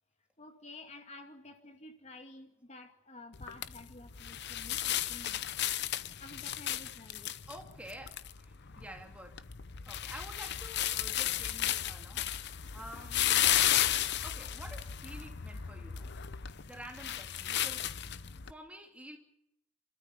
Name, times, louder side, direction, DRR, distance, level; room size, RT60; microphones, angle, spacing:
voice 1, 0.4-5.5 6.2-7.3, left 2 dB, 30° left, 2.3 m, -51 dB
sound 1, 3.3-18.5, left 11 dB, 55° left, 0.8 m, -34 dB
voice 2, 7.3-9.5 9.9-13.5 14.2-16.1 16.7-18.0 18.2-19.2, equal, 5° right, 2.6 m, -50 dB
28.5 x 14.0 x 8.4 m
head